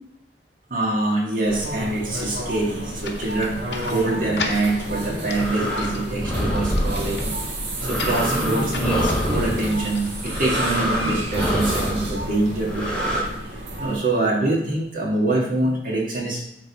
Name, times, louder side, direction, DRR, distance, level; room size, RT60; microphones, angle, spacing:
voice 1, 0.7-7.4 7.8-13.2 13.8-16.5, right 2 dB, 50° right, -2 dB, 1.8 m, -25 dB
sound 1, 1.4-14.0, equal, 70° right, 1.6 m, -30 dB
sound 2, 3.0-10.7, left 4 dB, 75° left, 0.8 m, -37 dB
sound 3, 4.9-13.2, equal, 5° left, 1.6 m, -27 dB
9.2 x 3.5 x 4.1 m, 0.81 s
head